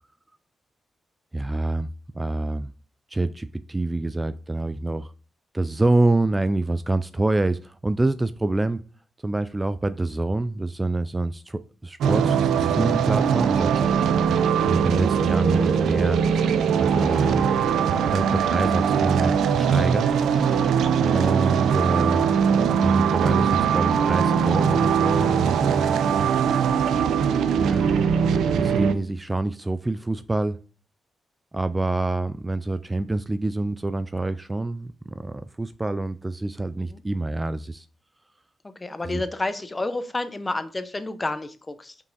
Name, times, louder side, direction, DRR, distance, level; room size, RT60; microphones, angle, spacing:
voice 1, 1.3-1.9 2.1-2.7 3.1-5.1 5.5-8.8 9.2-13.9 14.6-16.2 16.8-17.5 18.1-20.1 21.0-22.3 22.8-26.0 27.6-27.9 28.5-30.6 31.5-37.9 39.0-39.2, right 2 dB, 20° right, 0.4 m, -26 dB
sound 1, 12.0-28.9, right 7 dB, 85° right, 0.5 m, -21 dB
voice 2, 20.3-20.7 36.8-37.0 38.6-42.0, left 2 dB, 25° left, 0.8 m, -30 dB
5.8 x 4.6 x 3.9 m
cardioid pair, 65°, 0 cm